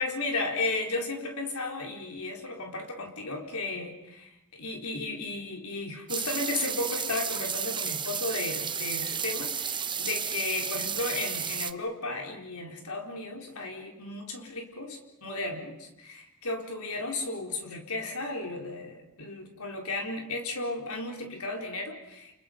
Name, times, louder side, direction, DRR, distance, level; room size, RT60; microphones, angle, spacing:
voice 1, 0.0-22.3, left 2 dB, 85° left, 2 dB, 4.4 m, -34 dB
sound 1, 6.1-11.7, right 7 dB, 20° right, 0.9 m, -32 dB
30.0 x 28.5 x 5.4 m, 0.89 s
head